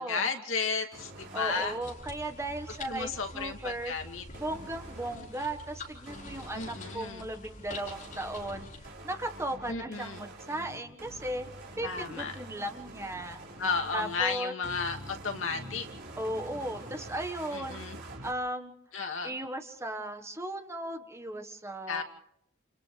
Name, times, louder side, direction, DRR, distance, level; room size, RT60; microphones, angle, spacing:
voice 1, 0.0-1.7 2.9-4.2 6.5-7.3 9.7-10.3 11.8-12.3 13.6-15.9 17.5-18.0 18.9-19.3 21.9-22.0, left 4 dB, 70° left, 3 dB, 2.5 m, -33 dB
sound 1, 0.9-1.8 4.3-5.2 6.1-6.9 7.8-14.2 14.6-18.3, right 1 dB, 55° right, 5.3 m, -46 dB
voice 2, 1.3-3.9 4.3-8.7 9.0-11.5 11.8-13.4 13.9-14.5 16.2-17.8 18.2-18.7 19.2-22.0, right 1 dB, 15° right, 6 dB, 1.4 m, -36 dB
sound 2, 1.8-8.9, left 2 dB, 40° left, 4.4 m, -46 dB
30.0 x 29.0 x 3.3 m, 0.73 s
head